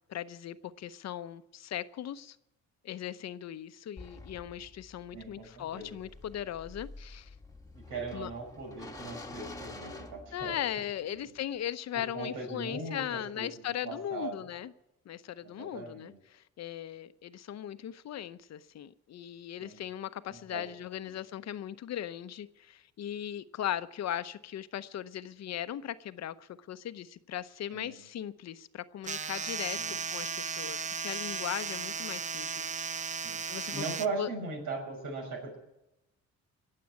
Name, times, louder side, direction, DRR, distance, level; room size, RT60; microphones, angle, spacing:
voice 1, 0.1-2.4 2.8-7.3 8.1-8.3 10.3-14.7 15.1-32.8 33.1-33.8 34.2-34.3, left 11 dB, 60° left, 0.7 m, -38 dB
sound 1, 4.0-10.9, left 2 dB, 10° left, 1.4 m, -48 dB
voice 2, 5.1-6.0 7.7-10.6 11.1-11.2 11.9-14.5 15.4-16.2 19.6-19.8 20.3-20.7 21.0-21.2 27.7-28.0 29.8-30.0 33.2-33.4 33.7-35.6, right 3 dB, 85° right, 6.1 m, -39 dB
sound 2, 29.0-34.1, right 5 dB, 25° right, 0.5 m, -36 dB
21.5 x 7.6 x 8.4 m
cardioid pair, 90°, 30 cm